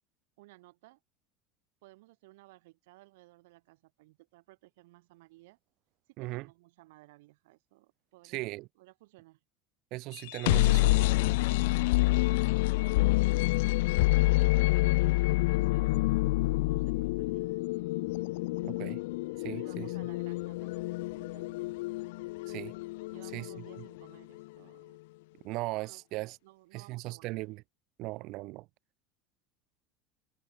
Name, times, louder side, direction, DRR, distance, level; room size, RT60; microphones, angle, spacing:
voice 1, 0.4-1.0 1.8-5.6 6.1-9.4 10.8-13.0 14.0-16.4 16.6-17.7 19.5-21.7 23.1-25.0 25.7-26.0 26.4-27.5, right 20 dB, 80° right, 4.2 m, -58 dB
voice 2, 8.2-8.7 9.9-11.0 18.6-19.0 19.4-19.9 22.5-22.7 23.3-23.5 25.4-26.4 26.7-27.6 28.0-28.7, right 21 dB, 60° right, 2.1 m, -38 dB
sound 1, 10.2-24.0, left 21 dB, 80° left, 0.3 m, -28 dB
supercardioid pair, 130°, 0 cm